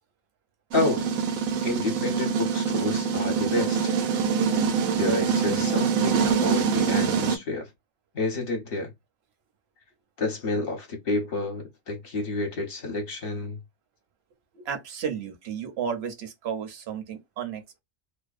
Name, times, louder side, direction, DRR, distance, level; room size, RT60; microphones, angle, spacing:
voice 1, 0.7-1.0 1.6-3.9 4.9-7.7 8.1-8.9 10.2-13.6, left 2 dB, 50° left, 0.9 m, -29 dB
sound 1, 0.7-7.4, right 6 dB, 90° right, 1.0 m, -24 dB
voice 2, 14.5-17.8, right 7 dB, 60° right, 0.8 m, -33 dB
2.6 x 2.1 x 2.3 m
omnidirectional pair, 1.4 m